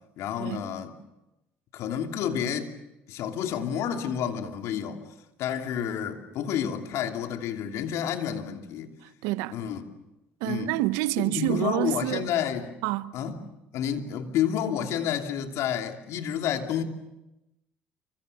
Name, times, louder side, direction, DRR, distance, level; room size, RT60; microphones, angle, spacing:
voice 1, 0.2-1.0 1.7-2.7 3.1-5.0 5.4-8.9 9.5-9.9 10.5-10.7 11.2-12.7 13.1-13.4 13.7-16.8, left 9 dB, 70° left, 2.9 m, -30 dB
voice 2, 9.0-9.6 10.4-12.3 12.8-13.1, right 18 dB, 80° right, 0.9 m, -28 dB
29.0 x 25.5 x 6.8 m
supercardioid pair, 70°, 5 cm